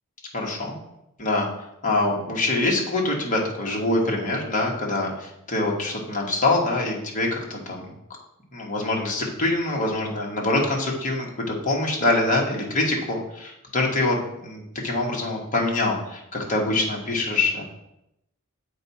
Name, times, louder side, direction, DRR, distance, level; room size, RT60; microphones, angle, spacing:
voice 1, 0.3-0.7 1.2-1.5 1.8-7.9 8.5-17.6, left 2 dB, 35° left, -2 dB, 1.5 m, -24 dB
7.6 x 4.7 x 4.2 m, 0.83 s
head